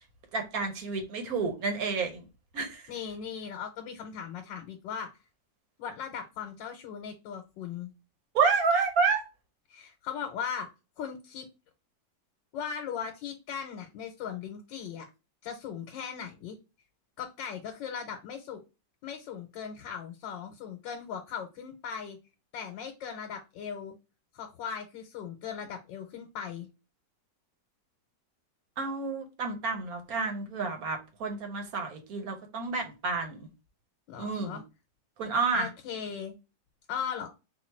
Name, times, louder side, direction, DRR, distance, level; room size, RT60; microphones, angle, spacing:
voice 1, 0.3-2.3 2.5-2.9 8.3-9.2 28.8-33.5 34.2-34.6 35.2-35.7, right 4 dB, 60° right, 1.2 m, -29 dB
voice 2, 2.9-5.1 5.8-7.9 9.7-10.7 11.0-11.5 12.5-15.1 15.4-16.6 17.2-18.6 19.0-22.2 22.5-23.9 24.3-26.7 34.1-34.6 35.5-36.3 36.9-37.3, left 7 dB, 85° left, 1.4 m, -38 dB
3.8 x 2.5 x 4.2 m
omnidirectional pair, 1.9 m